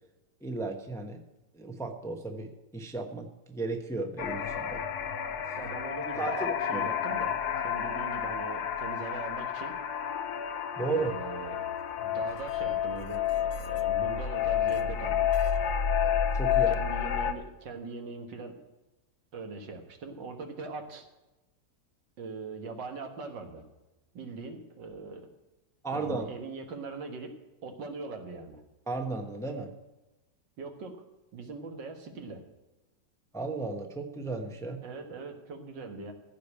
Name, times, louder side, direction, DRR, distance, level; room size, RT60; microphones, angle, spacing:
voice 1, 0.4-1.2 1.5-4.8 6.1-6.9 10.8-11.1 16.3-16.8 25.8-26.3 28.9-29.7 33.3-34.8, right 3 dB, ahead, 4 dB, 0.8 m, -34 dB
sound 1, 4.2-17.3, left 6 dB, 65° left, 1.3 m, -33 dB
voice 2, 5.6-9.8 10.9-15.3 16.5-18.6 19.3-21.1 22.2-23.7 24.1-25.3 25.9-27.4 27.6-28.6 30.6-31.0 31.3-32.4 34.8-36.1, right 4 dB, 80° right, 5 dB, 2.1 m, -41 dB
Musical instrument, 11.1-16.7, left 12 dB, 85° left, 1.4 m, -29 dB
15.5 x 5.1 x 8.5 m, 1.1 s
omnidirectional pair, 2.0 m